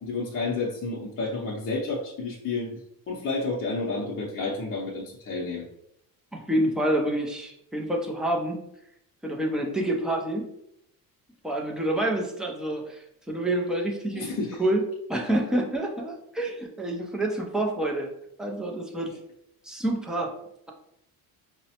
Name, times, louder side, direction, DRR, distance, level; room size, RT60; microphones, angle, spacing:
voice 1, 0.0-5.6 14.1-14.6, left 3 dB, 35° left, -5 dB, 0.6 m, -31 dB
voice 2, 6.3-8.6 9.2-10.5 11.4-14.3 14.6-14.8 15.1-18.1 18.4-19.1 19.6-20.3, right 1 dB, ahead, 0 dB, 0.3 m, -27 dB
5.0 x 2.1 x 2.7 m, 0.76 s
cardioid pair, 145°, 37 cm